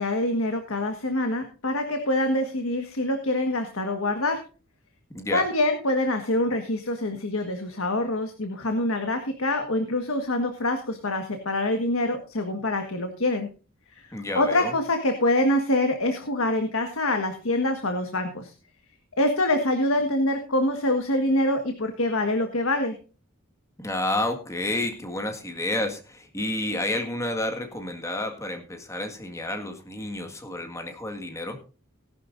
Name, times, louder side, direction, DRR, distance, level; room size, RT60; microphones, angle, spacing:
voice 1, 0.0-4.4 5.3-13.5 13.9-14.1 14.3-18.5 19.2-23.0, left 1 dB, 80° left, 5 dB, 1.6 m, -25 dB
voice 2, 5.1-5.5 14.1-14.7 23.8-31.6, left 1 dB, 15° left, 5 dB, 1.8 m, -30 dB
18.5 x 11.5 x 2.7 m, 0.35 s
head